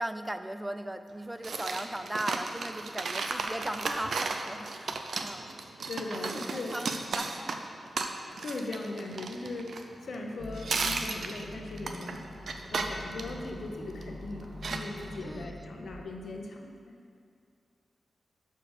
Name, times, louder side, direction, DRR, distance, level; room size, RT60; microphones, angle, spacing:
voice 1, 0.0-5.5 6.2-7.7 15.2-15.5, right 1 dB, 15° right, 9 dB, 0.4 m, -38 dB
sound 1, 1.4-10.3 10.5-14.1 14.6-15.2, right 4 dB, 70° right, 0.6 m, -34 dB
voice 2, 5.9-6.8 8.4-12.3 12.7-16.9, left 2 dB, 75° left, 2 dB, 0.9 m, -39 dB
sound 2, 10.4-16.0, left 1 dB, 20° left, 1.4 m, -44 dB
6.7 x 6.6 x 4.9 m, 2.2 s
cardioid pair, 45°, 0 cm